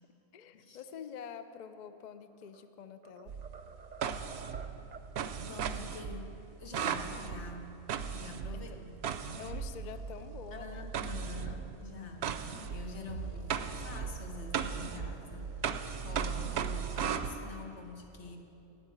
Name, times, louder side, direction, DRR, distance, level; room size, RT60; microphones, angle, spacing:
voice 1, 0.3-3.4 8.5-8.8 9.4-10.9, left 7 dB, 55° left, 11 dB, 0.5 m, -46 dB
sound 1, 2.2-2.7 3.0-5.2, right 5 dB, 45° right, 0.7 m, -50 dB
sound 2, 3.3-10.1 10.9-17.3, right 7 dB, 70° right, 0.8 m, -37 dB
voice 2, 5.5-7.8 8.1-8.9 10.5-18.4, left 4 dB, 80° left, 3 dB, 1.5 m, -47 dB
sound 3, 9.5-11.5 13.0-17.3, right 5 dB, 90° right, 1.1 m, -43 dB
9.6 x 8.1 x 8.8 m, 2.9 s
omnidirectional pair, 1.2 m